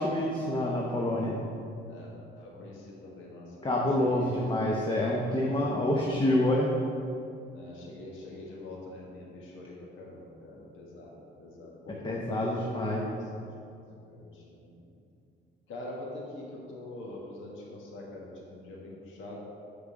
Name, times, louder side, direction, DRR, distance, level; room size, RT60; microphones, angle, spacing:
voice 1, 0.0-1.4 3.6-6.7 11.9-13.1, left 1 dB, 25° left, -2 dB, 0.8 m, -27 dB
voice 2, 1.9-4.8 7.5-12.4 12.8-12.9 13.3-15.0 15.7-19.4, left 2 dB, 80° left, -3 dB, 1.3 m, -45 dB
6.4 x 3.9 x 6.3 m, 2.6 s
cardioid pair, 90°, 20 cm